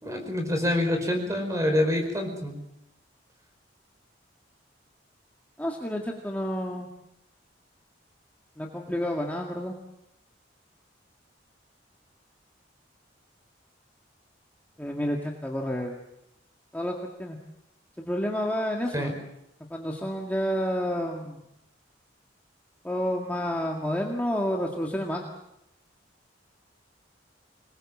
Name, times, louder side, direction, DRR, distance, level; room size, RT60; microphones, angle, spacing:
voice 1, 0.0-2.6 18.9-19.1, left 1 dB, 15° right, 5 dB, 4.9 m, -26 dB
voice 2, 5.6-6.9 8.6-9.7 14.8-16.0 16.7-17.4 18.0-19.1 19.7-21.4 22.8-25.2, equal, 10° left, 0 dB, 2.0 m, -30 dB
26.0 x 21.0 x 7.4 m, 0.84 s
head